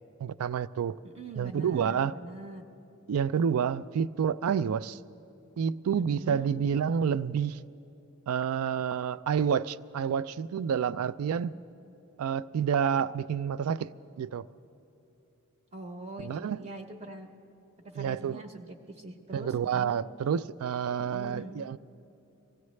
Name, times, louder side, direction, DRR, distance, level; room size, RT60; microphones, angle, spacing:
voice 1, 0.2-1.0 1.4-2.1 3.1-5.0 5.6-7.6 8.3-11.5 12.2-13.9 14.2-14.5 16.2-16.6 18.0-18.4 19.3-21.8, right 7 dB, 70° right, 17 dB, 0.3 m, -29 dB
voice 2, 1.0-2.6 5.9-6.5 15.7-17.3 17.8-20.0 21.0-21.5, right 1 dB, 30° right, 4 dB, 0.8 m, -43 dB
23.5 x 16.0 x 3.2 m, 2.8 s
head